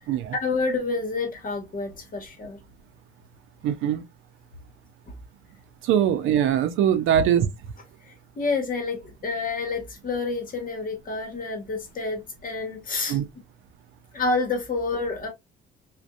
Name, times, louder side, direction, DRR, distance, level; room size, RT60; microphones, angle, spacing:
voice 1, 0.4-2.6 5.1-5.2 7.1-7.2 8.0-13.2 14.1-15.3, left 3 dB, 45° left, 1.1 m, -29 dB
voice 2, 3.6-4.0 5.8-7.5 13.1-13.2, right 10 dB, 85° right, 0.5 m, -22 dB
2.6 x 2.2 x 2.2 m
cardioid pair, 90°, 20 cm